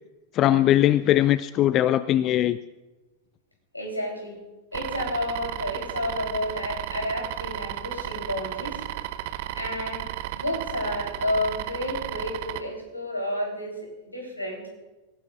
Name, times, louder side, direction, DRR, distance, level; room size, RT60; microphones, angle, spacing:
voice 1, 0.3-2.6, left 13 dB, 35° left, 16 dB, 0.4 m, -20 dB
voice 2, 3.7-4.4 4.7-8.8 9.5-10.0 10.3-14.6, left 1 dB, 85° left, 1 dB, 3.8 m, -31 dB
sound 1, 4.7-12.6, right 14 dB, 50° right, 0.7 m, -34 dB
25.5 x 15.5 x 2.5 m, 1.1 s
figure-of-eight pair, 90°, 0 cm